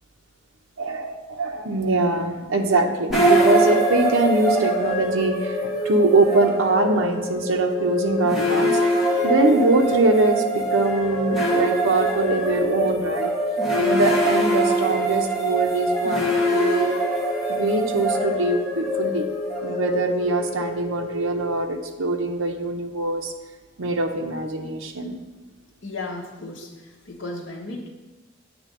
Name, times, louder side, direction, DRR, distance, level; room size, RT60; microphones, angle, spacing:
voice 1, 0.8-13.3 13.7-17.0 17.5-19.3 19.6-23.3 23.8-25.2, right 2 dB, 70° right, 3 dB, 0.7 m, -23 dB
sound 1, 3.1-22.2, right 1 dB, ahead, 1.6 m, -24 dB
voice 2, 25.8-27.9, left 2 dB, 60° left, -2 dB, 1.0 m, -35 dB
7.9 x 3.3 x 6.4 m, 1.2 s
head